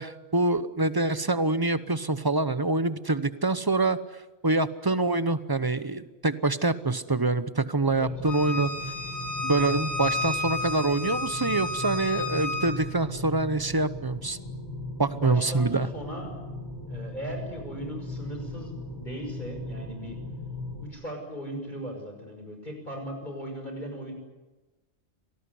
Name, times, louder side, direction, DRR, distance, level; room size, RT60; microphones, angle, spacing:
voice 1, 0.0-4.0 4.4-8.7 9.4-14.4 15.0-15.9, right 2 dB, 20° right, 14 dB, 0.8 m, -25 dB
sound 1, 7.9-20.9, left 1 dB, 20° left, 5.1 m, -38 dB
Bowed string instrument, 8.3-12.7, left 2 dB, 85° left, 5.5 m, -32 dB
voice 2, 15.1-16.3 16.9-20.2 20.8-24.1, equal, 45° left, 3 dB, 6.1 m, -38 dB
25.5 x 18.0 x 9.8 m, 1.1 s
omnidirectional pair, 1.1 m